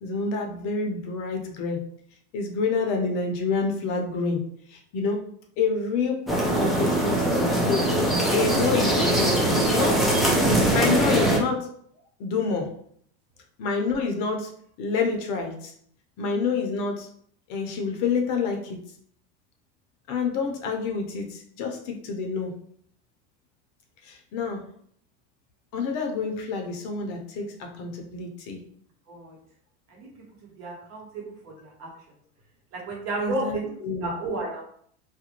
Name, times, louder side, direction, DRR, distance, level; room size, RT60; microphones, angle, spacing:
voice 1, 0.0-1.8 2.3-4.4 4.7-5.2 5.6-7.9 8.3-9.4 9.7-10.1 10.7-11.7 12.2-12.7 13.6-14.5 14.8-15.7 16.2-17.1 17.5-18.8 20.1-22.5 24.0-24.6 25.7-28.7 33.2-34.1, left 4 dB, 55° left, 3 dB, 0.6 m, -28 dB
sound 1, 6.3-11.4, right 1 dB, ahead, 0.3 m, -22 dB
voice 2, 30.6-31.9 32.7-33.7 34.0-34.6, right 2 dB, 50° right, -2 dB, 1.1 m, -32 dB
2.4 x 2.1 x 2.9 m, 0.63 s
supercardioid pair, 130°, 32 cm